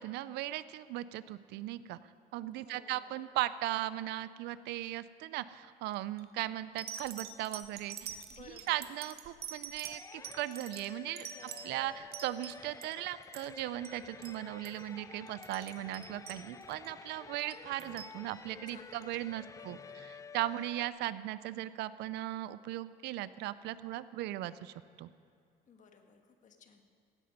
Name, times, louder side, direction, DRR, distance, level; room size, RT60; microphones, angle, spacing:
voice 1, 0.0-2.0 2.3-11.3 11.6-25.1, right 15 dB, 85° right, 16 dB, 0.5 m, -38 dB
voice 2, 2.6-3.2 8.3-8.8 11.3-11.9 18.6-20.1 25.7-26.9, left 6 dB, 50° left, 5 dB, 1.4 m, -58 dB
sound 1, 5.9-6.2 6.8-12.9 13.2-13.6 13.8-14.0 14.2-14.4 14.6-14.9 15.3-16.9 17.5-18.2 19.0-19.1, right 8 dB, 70° right, 0.9 m, -45 dB
sound 2, 9.8-20.9, left 5 dB, 20° left, 0.3 m, -51 dB
16.0 x 8.7 x 5.3 m, 2.5 s
cardioid pair, 110°, 17 cm